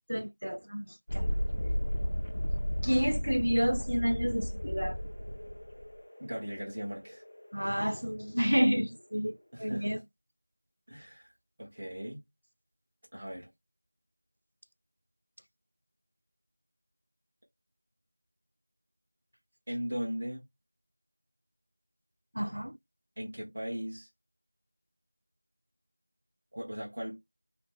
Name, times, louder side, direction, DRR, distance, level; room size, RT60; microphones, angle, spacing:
voice 1, 0.1-1.3 2.8-5.0 7.5-10.0 22.3-22.8, equal, 85° right, 0.4 m, -30 dB
Thunderstorm, 1.1-8.5, equal, 50° left, 0.6 m, -34 dB
voice 2, 6.2-7.2 9.5-10.0 10.9-11.3 11.6-12.2 13.1-13.5 19.7-20.4 23.2-24.1 26.5-27.2, equal, 30° right, 1.2 m, -38 dB
4.9 x 2.1 x 3.3 m
figure-of-eight pair, 175°, 0 cm